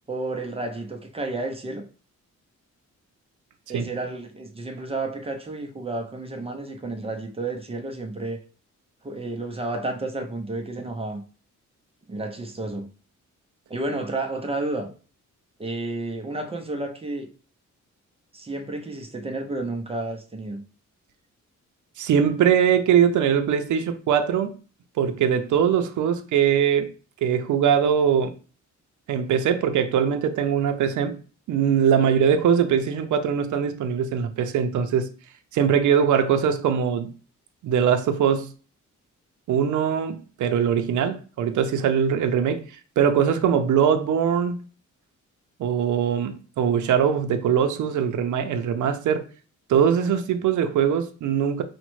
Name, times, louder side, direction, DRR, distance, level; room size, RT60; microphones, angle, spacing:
voice 1, 0.1-1.9 3.7-8.4 9.0-11.2 12.1-12.9 13.7-14.9 15.6-17.3 18.3-20.6, right 2 dB, 20° right, 0.4 m, -31 dB
voice 2, 22.0-24.5 25.0-26.9 27.2-28.3 29.1-31.2 31.5-35.1 35.5-37.1 37.6-38.5 39.5-42.6 43.0-44.6 45.6-49.2 49.7-51.6, right 8 dB, 75° right, 0.5 m, -21 dB
5.0 x 2.1 x 3.0 m
wide cardioid pair, 155°, 30 cm